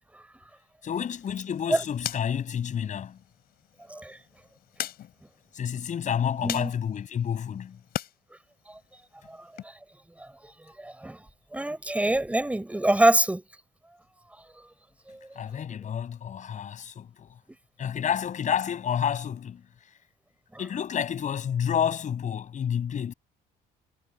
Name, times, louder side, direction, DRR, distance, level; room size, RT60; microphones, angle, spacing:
voice 1, 0.8-3.2 5.5-7.8 15.3-17.4 17.8-19.6 20.6-23.1, left 8 dB, 45° left, 6.5 m, -29 dB
sound 1, 0.9-8.1 8.5-9.6, left 12 dB, 65° left, 5.1 m, -41 dB
voice 2, 3.9-4.2 6.4-6.7 8.7-8.8 9.2-9.8 10.2-13.4 14.3-14.7 15.1-15.3 20.5-20.6, right 1 dB, 10° right, 5.2 m, -27 dB
cardioid pair, 110°, 17 cm